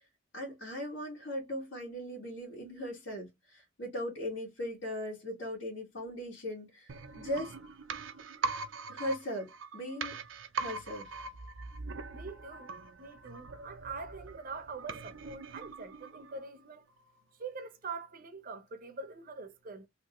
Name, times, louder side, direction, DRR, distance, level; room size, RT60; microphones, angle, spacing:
voice 1, 0.3-7.5 8.9-10.2 10.6-11.1, equal, 75° left, 1.8 m, -39 dB
sound 1, 6.9-16.6 16.9-17.0, right 4 dB, 90° right, 0.6 m, -41 dB
voice 2, 12.1-12.7 13.0-16.9 17.4-19.9, right 4 dB, 45° right, 0.7 m, -44 dB
3.3 x 2.6 x 3.0 m
head